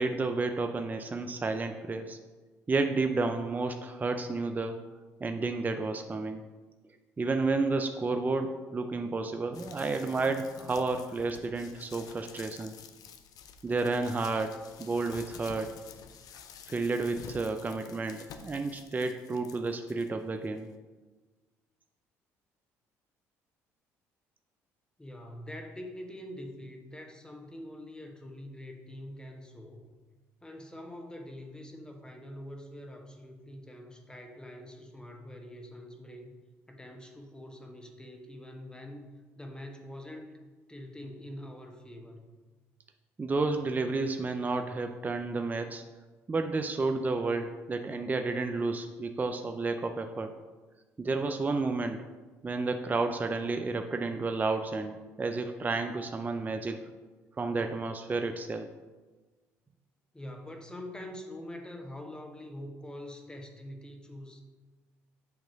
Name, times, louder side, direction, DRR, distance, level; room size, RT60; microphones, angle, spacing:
voice 1, 0.0-2.2 2.7-4.8 5.2-6.5 7.2-12.7 13.6-15.8 16.7-20.7 43.2-45.8 46.3-50.4 51.0-52.1 52.4-56.9 57.4-58.7, right 3 dB, 25° right, 6 dB, 0.5 m, -31 dB
sound 1, 9.5-20.1 20.6-20.7, left 6 dB, 65° left, 0.6 m, -50 dB
voice 2, 25.0-29.8 30.4-36.3 36.7-40.3 40.7-42.3 60.1-64.4, left 1 dB, 10° left, 4 dB, 1.2 m, -44 dB
7.9 x 3.0 x 5.1 m, 1.3 s
hypercardioid pair, 65°, 7 cm